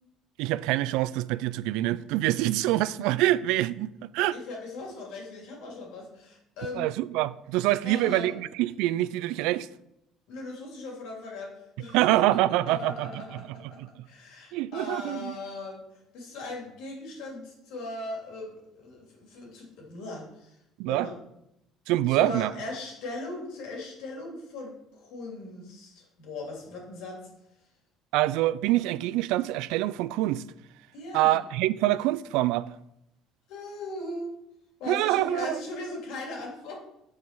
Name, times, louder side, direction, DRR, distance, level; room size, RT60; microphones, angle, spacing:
voice 1, 0.4-4.4 6.8-9.7 11.9-13.1 14.5-15.3 20.8-21.1 21.9-22.5 28.1-30.4 31.1-32.7 34.9-35.6, right 15 dB, 85° right, 0.3 m, -25 dB
voice 2, 4.3-6.9 7.8-8.4 10.3-13.8 14.0-15.8 16.1-20.6 20.9-21.2 22.1-27.3 30.9-31.4 33.5-34.3 34.8-36.7, left 2 dB, 75° left, 3.1 m, -38 dB
7.4 x 4.7 x 6.9 m
cardioid pair, 130°, 0 cm